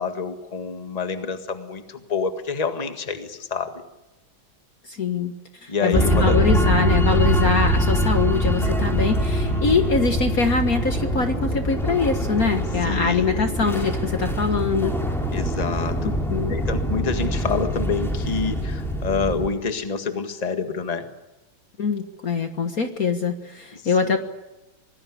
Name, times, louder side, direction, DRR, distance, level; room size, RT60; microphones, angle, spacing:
voice 1, 0.0-3.8 5.7-6.4 9.4-9.9 12.8-13.4 15.3-16.1 16.5-21.1 23.7-24.2, left 4 dB, 20° left, 7 dB, 1.8 m, -28 dB
voice 2, 4.9-5.3 5.6-14.9 16.0-16.6 21.8-24.2, left 5 dB, 45° left, 7 dB, 1.8 m, -23 dB
sound 1, 5.9-19.5, equal, ahead, 3.8 m, -23 dB
25.5 x 19.5 x 9.8 m, 1.0 s
omnidirectional pair, 2.2 m